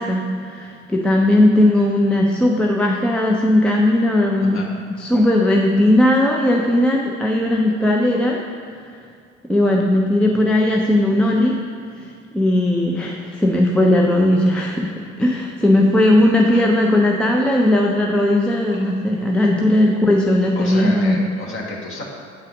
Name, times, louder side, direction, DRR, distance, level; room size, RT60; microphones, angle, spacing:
voice 1, 0.0-4.6 5.0-8.4 9.5-11.6 12.0-21.2, left 1 dB, 5° left, -1 dB, 0.4 m, -17 dB
voice 2, 20.5-22.0, left 2 dB, 35° left, -2 dB, 1.5 m, -31 dB
8.4 x 4.0 x 4.9 m, 2.2 s
figure-of-eight pair, 65°, 37 cm